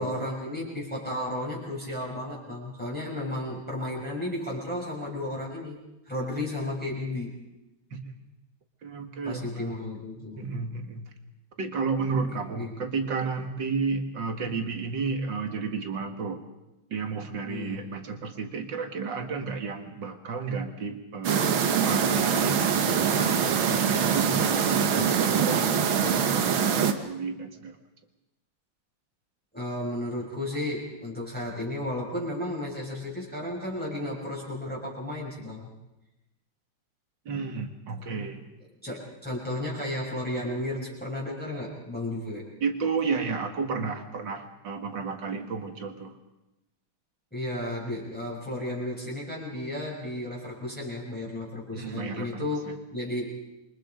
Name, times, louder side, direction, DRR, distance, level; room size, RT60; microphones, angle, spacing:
voice 1, 0.0-5.8 6.1-7.4 9.2-10.5 12.2-12.8 17.5-17.8 29.5-35.7 38.8-42.5 47.3-53.3, left 1 dB, 5° left, -5 dB, 5.9 m, -33 dB
voice 2, 8.8-9.9 10.4-11.0 11.6-16.4 16.9-25.7 26.0-27.7 37.3-38.4 42.6-46.1 51.7-52.7, right 4 dB, 65° right, 5 dB, 2.7 m, -32 dB
sound 1, 21.2-26.9, right 7 dB, 90° right, 2.1 m, -24 dB
28.0 x 23.5 x 5.2 m, 0.96 s
omnidirectional pair, 2.1 m